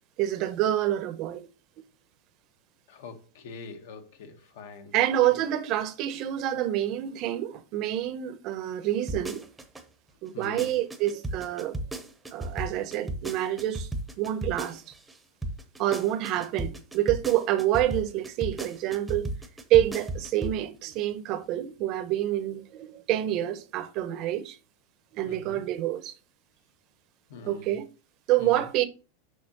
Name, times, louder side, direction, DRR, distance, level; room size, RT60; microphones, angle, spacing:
voice 1, 0.2-1.5 4.9-9.5 10.2-11.7 12.3-13.9 14.2-14.8 15.8-19.3 19.7-24.6 25.1-26.1 27.5-27.9 28.3-28.8, right 13 dB, 40° right, 0.6 m, -27 dB
voice 2, 2.9-5.1 10.3-10.7 25.3-25.6 27.3-27.8 28.4-28.6, left 3 dB, 65° left, 1.1 m, -43 dB
sound 1, 9.1-9.8 10.3-15.2 15.4-20.6 20.9-21.0, right 1 dB, 5° right, 0.7 m, -35 dB
6.4 x 5.8 x 2.9 m
supercardioid pair, 160°, 0 cm